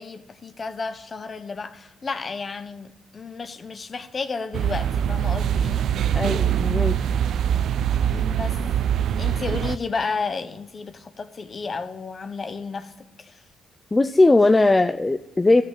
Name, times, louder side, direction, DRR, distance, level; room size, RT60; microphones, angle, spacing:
voice 1, 0.0-5.9 8.1-8.6 9.2-13.4, left 4 dB, 40° left, 1.2 m, -32 dB
sound 1, 4.5-9.8, right 9 dB, 70° right, 0.5 m, -23 dB
voice 2, 6.2-7.0 13.9-15.6, left 2 dB, 20° left, 0.6 m, -18 dB
13.5 x 6.5 x 8.7 m
cardioid pair, 90°, 0 cm